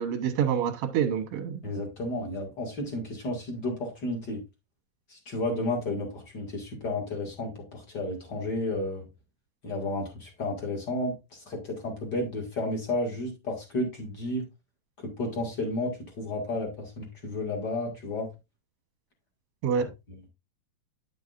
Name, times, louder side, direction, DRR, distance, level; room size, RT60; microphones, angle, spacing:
voice 1, 0.0-1.6 19.6-19.9, right 7 dB, 60° right, 5 dB, 1.6 m, -27 dB
voice 2, 1.6-4.4 5.1-9.0 9.6-11.1 11.5-14.4 15.2-18.3, left 2 dB, 35° left, 1 dB, 2.3 m, -32 dB
9.8 x 6.3 x 2.6 m, 0.24 s
omnidirectional pair, 4.0 m